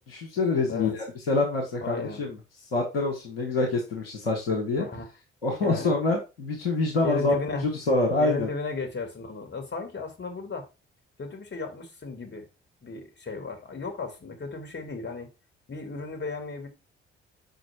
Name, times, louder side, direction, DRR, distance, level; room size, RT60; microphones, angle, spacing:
voice 1, 0.1-2.3 2.7-4.8 5.4-7.4 7.6-8.5, left 3 dB, 85° left, 1.3 m, -26 dB
voice 2, 1.8-2.3 4.8-5.1 5.6-6.0 7.0-7.7 8.2-10.7 11.2-12.5 12.8-15.3 15.7-16.7, left 4 dB, 40° left, 2.5 m, -35 dB
5.3 x 5.2 x 4.5 m
figure-of-eight pair, 45°, 29 cm